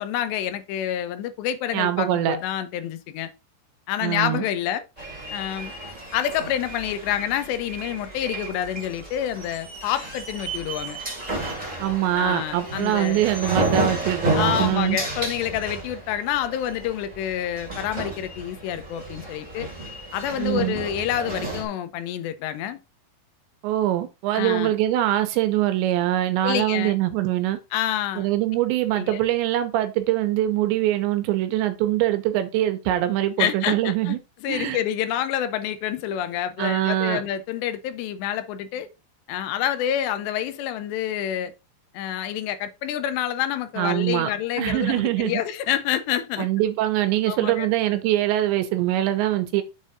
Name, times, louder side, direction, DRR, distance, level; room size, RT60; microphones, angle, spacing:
voice 1, 0.0-3.3 3.9-4.8 5.3-5.7 6.1-11.0 12.2-13.2 14.3-19.7 20.1-22.8 24.3-24.7 26.4-26.9 27.7-28.3 28.9-29.2 33.4-38.9 39.3-41.5 41.9-46.5 47.3-47.7, left 11 dB, 75° left, 2.8 m, -28 dB
voice 2, 1.7-2.4 4.0-4.4 11.8-15.0 20.4-20.8 23.6-27.6 28.2-34.2 34.5-34.8 36.6-37.2 43.8-44.3 44.6-45.4 46.4-49.6, right 13 dB, 80° right, 3.2 m, -23 dB
sound 1, 5.0-21.6, right 2 dB, 20° right, 1.3 m, -32 dB
7.4 x 4.0 x 5.1 m
omnidirectional pair, 5.3 m